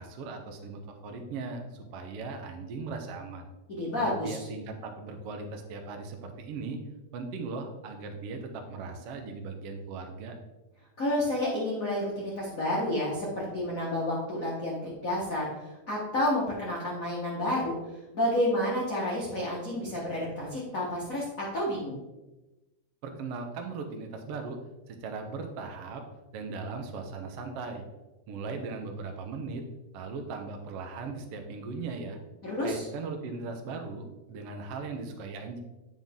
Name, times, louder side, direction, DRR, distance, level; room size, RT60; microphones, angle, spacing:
voice 1, 0.0-3.5 4.0-6.8 7.1-10.4 23.0-24.6 24.9-26.0 26.3-27.8 28.3-29.6 29.9-32.2 32.6-35.6, right 4 dB, 85° right, 4 dB, 1.3 m, -38 dB
voice 2, 3.7-4.4 11.0-15.5 15.9-17.8 18.1-22.0 32.4-32.9, left 1 dB, 60° left, -6 dB, 0.8 m, -30 dB
9.3 x 5.9 x 3.6 m, 1.1 s
omnidirectional pair, 4.0 m